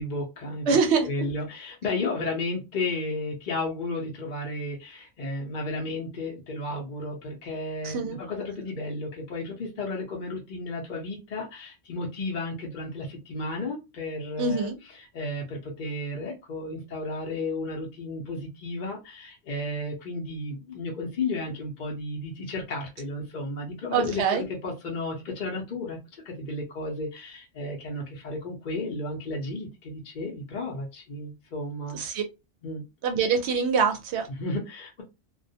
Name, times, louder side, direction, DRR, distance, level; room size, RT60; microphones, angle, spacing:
voice 1, 0.0-0.8 1.0-32.0 32.6-32.8 34.3-35.0, left 2 dB, 55° left, 0.6 m, -33 dB
voice 2, 0.7-1.1 7.8-8.2 14.4-14.7 23.9-24.4 31.9-32.2 33.0-34.3, right 5 dB, 70° right, 0.8 m, -24 dB
2.3 x 2.1 x 2.6 m
omnidirectional pair, 1.2 m